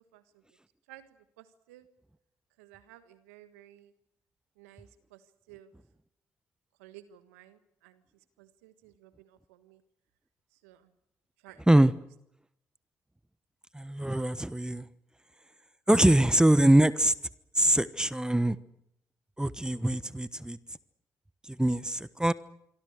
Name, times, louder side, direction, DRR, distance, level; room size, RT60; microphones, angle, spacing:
voice 1, 0.1-0.4 0.9-1.9 2.6-3.9 4.6-5.7 6.8-8.0 8.4-9.8 10.5-10.9 11.4-11.6, right 13 dB, 85° right, 11 dB, 1.5 m, -55 dB
voice 2, 13.7-14.9 15.9-17.1 17.5-18.6 19.4-20.6 21.5-22.3, right 1 dB, 10° right, 15 dB, 1.2 m, -23 dB
27.5 x 23.5 x 6.6 m, 0.80 s
hypercardioid pair, 40°, 8 cm